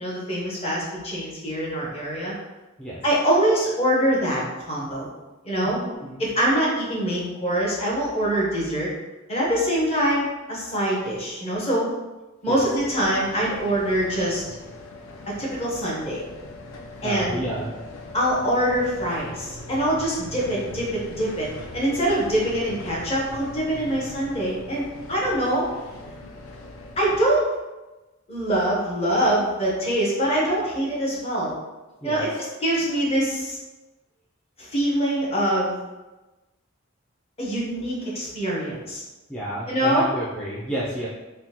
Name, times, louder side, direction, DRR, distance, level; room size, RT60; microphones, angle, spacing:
voice 1, 0.0-2.3 3.0-5.1 5.4-5.8 6.2-8.9 9.3-11.9 12.4-14.4 15.4-16.2 17.0-17.4 18.1-21.5 21.7-25.7 27.0-27.4 28.3-31.6 32.0-33.6 34.6-35.8 37.4-39.0 39.7-40.1, right 1 dB, 30° left, -4 dB, 0.9 m, -24 dB
voice 2, 5.7-6.2 12.5-12.6 17.0-17.9 32.0-32.3 39.3-41.1, right 1 dB, 5° left, -8 dB, 0.4 m, -30 dB
sound 1, 12.8-27.2, left 2 dB, 85° left, 0.4 m, -40 dB
3.6 x 2.1 x 2.8 m, 1.1 s
head